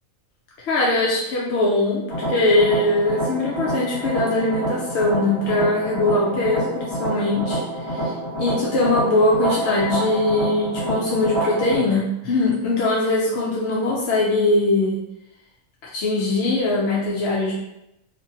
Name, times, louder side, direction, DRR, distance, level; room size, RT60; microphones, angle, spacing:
voice 1, 0.7-7.6 7.9-15.0 15.9-17.6, left 2 dB, 65° left, -5 dB, 0.7 m, -21 dB
sound 1, 2.1-11.8, right 1 dB, 25° left, 0.9 m, -27 dB
3.1 x 2.1 x 2.7 m, 0.87 s
omnidirectional pair, 1.4 m